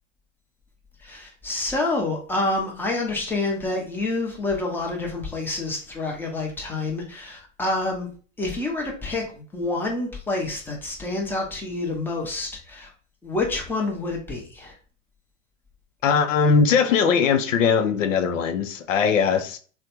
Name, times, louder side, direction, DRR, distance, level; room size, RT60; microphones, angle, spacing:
voice 1, 1.0-8.1 8.4-9.2 9.5-12.9 13.2-14.7, left 2 dB, 5° left, 0.7 m, -28 dB
voice 2, 16.0-19.6, left 6 dB, 75° left, 0.6 m, -20 dB
3.2 x 2.1 x 2.9 m
hypercardioid pair, 100°, 39 cm